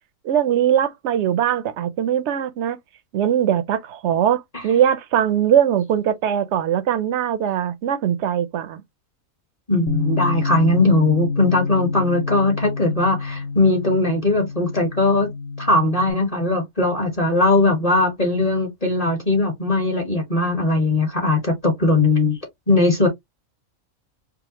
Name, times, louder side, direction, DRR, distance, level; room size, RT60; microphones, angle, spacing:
voice 1, 0.2-2.8 3.1-8.8, right 9 dB, 65° right, 0.8 m, -21 dB
voice 2, 9.7-15.3 15.6-22.4 22.7-23.1, left 2 dB, 30° left, 1.2 m, -19 dB
Bass guitar, 9.9-16.1, left 4 dB, 90° left, 1.1 m, -27 dB
5.0 x 2.1 x 2.8 m
omnidirectional pair, 1.4 m